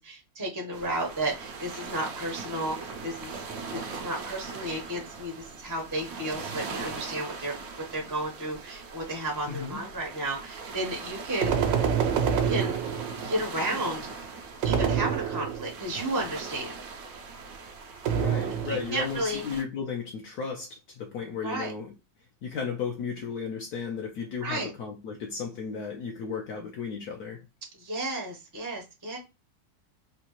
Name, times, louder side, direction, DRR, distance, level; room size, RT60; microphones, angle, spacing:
voice 1, 0.0-3.4 3.7-11.8 12.3-12.8 13.2-14.1 14.6-16.8 18.6-19.4 21.4-21.7 24.4-24.7 27.7-29.2, right 1 dB, 20° right, 0.5 m, -33 dB
sound 1, 0.7-19.6, right 4 dB, 65° right, 0.9 m, -40 dB
voice 2, 9.5-9.8 18.1-21.9 22.4-27.4, left 6 dB, 65° left, 1.2 m, -34 dB
sound 2, 11.4-13.4 14.6-15.8 18.0-19.0, right 7 dB, 80° right, 1.3 m, -27 dB
4.2 x 2.3 x 3.0 m
omnidirectional pair, 2.0 m